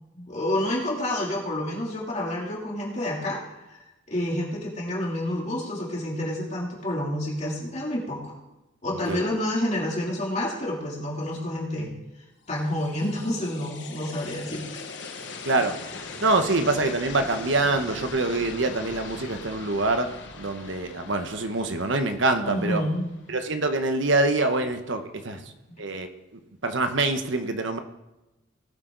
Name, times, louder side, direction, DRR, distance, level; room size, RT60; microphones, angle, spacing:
voice 1, 0.1-3.8 4.1-8.3 8.8-11.9 12.5-14.7 22.4-23.1, left 1 dB, 35° left, -4 dB, 3.0 m, -29 dB
voice 2, 8.9-9.2 15.4-15.7 16.2-20.1 20.4-22.8 23.3-25.4 25.8-26.1 26.6-27.8, right 2 dB, 65° right, 7 dB, 1.1 m, -25 dB
sound 1, 12.5-23.5, left 4 dB, 60° left, 1.3 m, -41 dB
19.0 x 8.3 x 4.0 m, 1.0 s
head